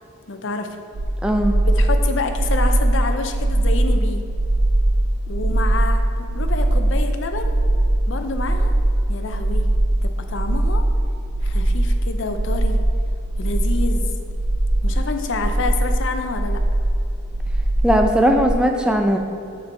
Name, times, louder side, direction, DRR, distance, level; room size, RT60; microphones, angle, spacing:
voice 1, 0.3-0.7 1.7-4.2 5.3-7.6 8.1-8.7 9.1-9.7 10.0-10.8 11.4-12.8 13.4-14.1 14.8-16.6, left 3 dB, 60° left, 6 dB, 0.5 m, -28 dB
sound 1, 0.9-18.5, right 1 dB, 65° right, 0.6 m, -20 dB
voice 2, 1.2-1.5 17.8-19.2, equal, 5° right, 3 dB, 0.4 m, -18 dB
7.4 x 4.5 x 4.6 m, 2.5 s
head